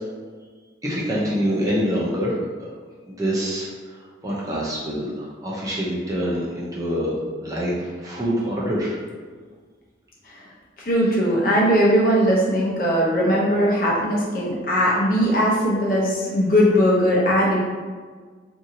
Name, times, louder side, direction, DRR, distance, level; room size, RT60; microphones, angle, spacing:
voice 1, 0.8-2.7 3.1-9.0, equal, 20° right, -6 dB, 0.5 m, -26 dB
voice 2, 10.8-17.6, equal, 50° left, -5 dB, 0.7 m, -19 dB
2.7 x 2.7 x 2.6 m, 1.5 s
head